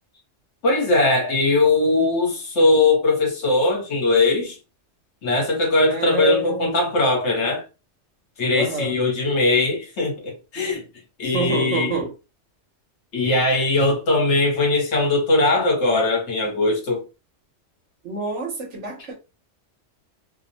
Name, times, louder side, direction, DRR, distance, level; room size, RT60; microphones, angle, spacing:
voice 1, 0.6-4.6 5.2-7.6 8.4-10.8 11.2-11.9 13.1-17.0, left 2 dB, 65° left, 1.2 m, -20 dB
voice 2, 5.9-6.8 8.5-8.9 11.2-12.1 18.0-19.1, right 2 dB, 70° right, 1.1 m, -27 dB
2.7 x 2.0 x 2.7 m
omnidirectional pair, 1.3 m